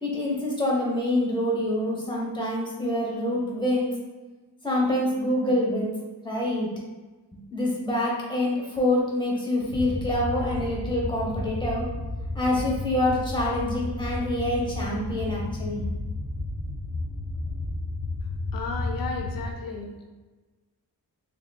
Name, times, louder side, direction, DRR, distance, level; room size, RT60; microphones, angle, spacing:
voice 1, 0.0-3.9 4.6-6.0 6.2-6.7 7.5-11.9 12.3-15.8, left 1 dB, 10° left, -4 dB, 0.8 m, -26 dB
sound 1, 9.7-19.5, left 2 dB, 75° left, 1.0 m, -32 dB
voice 2, 18.5-19.9, left 4 dB, 55° left, 2 dB, 0.6 m, -33 dB
3.7 x 3.0 x 2.3 m, 1.2 s
wide cardioid pair, 125°, 42 cm